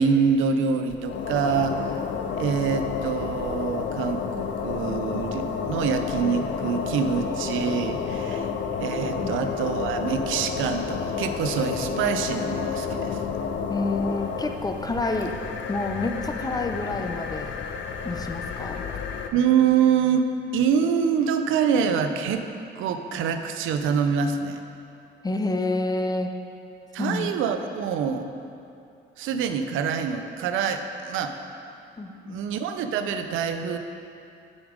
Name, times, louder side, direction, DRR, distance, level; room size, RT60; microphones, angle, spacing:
voice 1, 0.0-2.0 2.3-8.5 8.8-13.2 19.3-22.5 22.8-24.6 26.9-28.3 29.2-31.4 32.2-33.8, right 6 dB, 85° right, 7 dB, 0.5 m, -25 dB
sound 1, 0.9-19.3, left 6 dB, 70° left, 0.6 m, -30 dB
voice 2, 13.7-15.3 15.7-17.6 18.0-18.8 25.2-26.3 27.0-27.3 32.0-32.4, left 2 dB, 20° left, 5 dB, 0.5 m, -28 dB
7.0 x 5.1 x 5.0 m, 2.6 s
cardioid pair, 90°, 20 cm